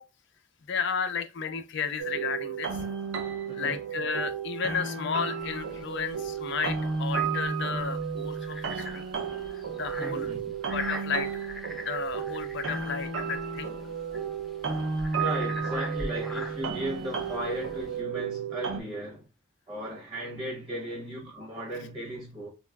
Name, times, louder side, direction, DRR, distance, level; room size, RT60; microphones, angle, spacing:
voice 1, 0.7-2.8 3.6-9.1 9.8-10.3 10.7-11.3 11.9-13.7, left 6 dB, 60° left, 0.5 m, -33 dB
sound 1, 2.0-18.8, right 5 dB, 80° right, 0.5 m, -33 dB
sound 2, 5.4-18.0, left 1 dB, ahead, 0.4 m, -42 dB
voice 2, 10.0-10.5 15.2-19.2 19.7-22.5, right 1 dB, 25° right, 0.8 m, -36 dB
3.7 x 2.3 x 2.2 m
head